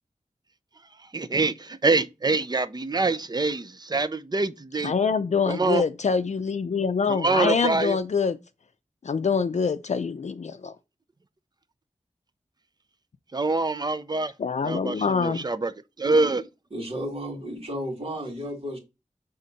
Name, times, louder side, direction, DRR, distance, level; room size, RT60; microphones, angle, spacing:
voice 1, 1.1-4.9 5.5-5.8 7.1-8.0 13.3-14.3 14.6-15.7 16.0-16.4, right 3 dB, 30° right, 0.5 m, -25 dB
voice 2, 4.8-8.4 9.0-10.8 14.4-15.5, left 5 dB, 65° left, 0.5 m, -25 dB
voice 3, 16.7-18.8, equal, 50° right, 2.4 m, -33 dB
5.6 x 3.6 x 5.2 m
wide cardioid pair, 70°, 13 cm